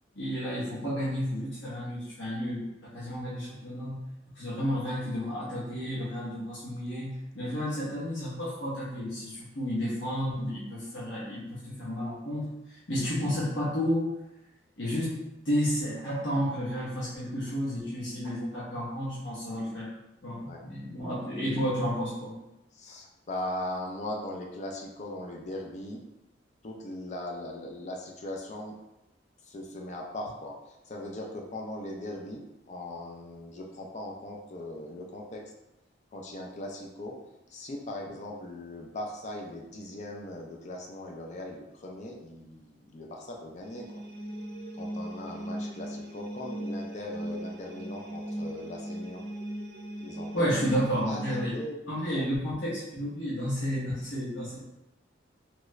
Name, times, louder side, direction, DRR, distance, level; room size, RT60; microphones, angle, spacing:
voice 1, 0.1-14.1 14.8-15.2 15.4-19.9 20.2-22.4 50.3-51.5 51.9-54.6, equal, 85° left, -8 dB, 0.9 m, -31 dB
voice 2, 22.7-26.0 26.6-28.8 29.4-35.5 36.1-37.2 37.5-44.0 44.8-49.2 50.0-50.5 51.0-52.2, left 1 dB, 40° left, 0 dB, 0.4 m, -39 dB
sound 1, 43.6-51.5, right 1 dB, 55° right, 0.6 m, -38 dB
3.0 x 2.4 x 3.1 m, 0.92 s
head